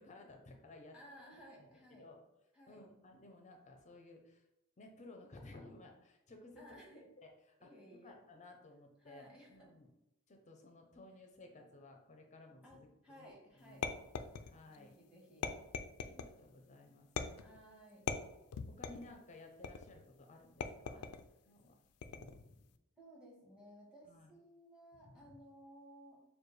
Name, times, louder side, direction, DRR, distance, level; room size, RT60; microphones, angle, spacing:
voice 1, 0.0-0.9 1.3-2.2 2.7-4.4 4.8-6.6 7.2-7.3 7.6-9.9 10.3-13.9 14.2-15.0 16.0-17.4 18.7-21.1 21.5-21.8 22.0-22.6 24.0-24.3 25.0-25.3, left 2 dB, 30° left, 3 dB, 0.6 m, -57 dB
voice 2, 0.9-2.1 2.5-2.8 6.6-7.0 7.6-8.1 9.0-9.7 12.6-13.9 14.8-15.6 17.4-18.0 20.9-21.1 23.0-26.2, equal, 5° right, -4 dB, 1.3 m, -58 dB
sound 1, 13.8-14.8 15.4-16.3 17.2-17.6 18.1-19.1 19.6-20.0 20.6-21.3 22.0-22.5, left 6 dB, 80° left, 0.4 m, -41 dB
6.7 x 2.3 x 3.2 m, 0.90 s
head